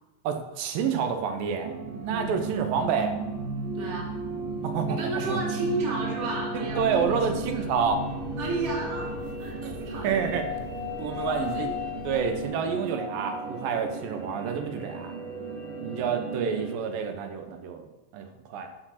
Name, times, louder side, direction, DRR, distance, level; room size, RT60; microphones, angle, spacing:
voice 1, 0.2-1.7 2.0-3.1 4.6-5.0 5.3-5.4 6.5-8.0 9.6-10.5 11.0-11.8 12.0-15.1 15.8-17.9 18.1-18.7, right 6 dB, 85° right, 5 dB, 2.7 m, -28 dB
sound 1, 1.6-16.7, right 2 dB, 65° right, 4.0 m, -34 dB
voice 2, 3.7-4.1 4.9-7.6 8.4-9.1 9.4-10.1 11.1-11.8 15.8-16.0, right 2 dB, 25° right, -2 dB, 1.7 m, -33 dB
sound 2, 6.7-12.5, left 10 dB, 80° left, 2.2 m, -43 dB
13.0 x 4.4 x 5.7 m, 1.0 s
omnidirectional pair, 3.9 m